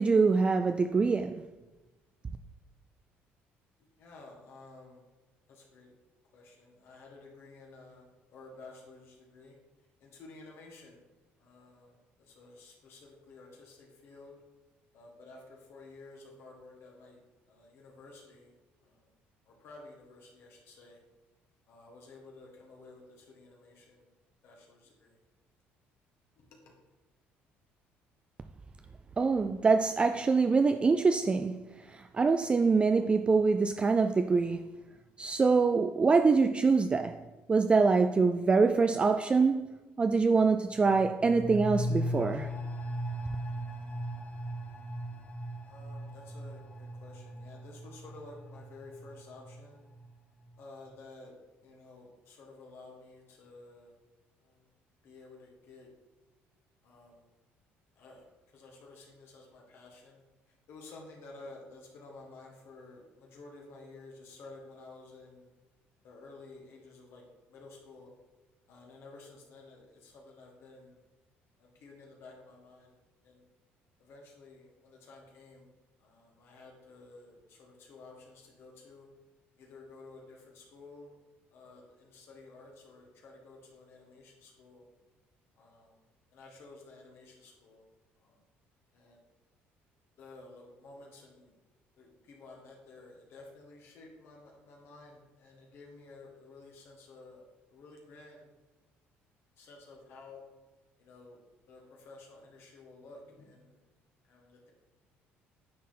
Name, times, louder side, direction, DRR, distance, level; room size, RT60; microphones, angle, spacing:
voice 1, 0.0-1.4 29.2-31.6 31.9-34.6 35.2-37.2 37.5-39.7 40.0-42.5, right 4 dB, 25° right, 0.3 m, -25 dB
voice 2, 4.0-5.0 5.5-5.9 6.3-8.0 8.3-9.5 10.0-11.0 11.4-11.9 12.3-14.3 14.9-17.2 17.5-18.5 18.8-19.0 19.5-21.0 21.7-24.0 24.4-25.1 26.4-26.7 45.6-49.8 50.6-51.3 51.6-53.9 55.0-55.9 56.8-57.2 58.0-58.3 58.5-60.2 60.7-65.5 66.0-67.2 67.5-68.1 68.7-71.0 71.6-72.9 73.2-73.4 74.0-75.7 76.0-79.1 79.6-81.2 81.5-84.8 85.6-86.0 86.3-87.8 88.2-88.4 88.9-89.2 90.2-91.5 92.0-97.4 97.7-98.5 99.6-100.4 101.0-101.4 101.7-103.8 104.3-104.7, left 3 dB, 65° left, 1.7 m, -52 dB
sound 1, 40.7-50.1 50.4-50.5, equal, 30° left, 0.9 m, -38 dB
9.4 x 4.2 x 4.2 m
cardioid pair, 105°, 5 cm